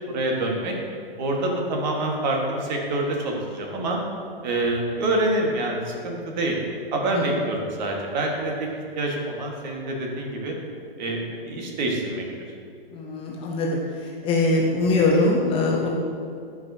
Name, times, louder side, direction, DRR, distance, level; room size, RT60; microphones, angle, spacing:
voice 1, 0.1-0.7 1.2-4.0 4.4-6.6 6.9-8.7 9.0-10.5 11.0-12.2, right 2 dB, 50° right, 0 dB, 1.4 m, -26 dB
voice 2, 7.1-7.5 12.9-15.9, left 2 dB, 20° left, -1 dB, 0.6 m, -23 dB
11.5 x 5.1 x 2.7 m, 2.3 s
hypercardioid pair, 125°, 30 cm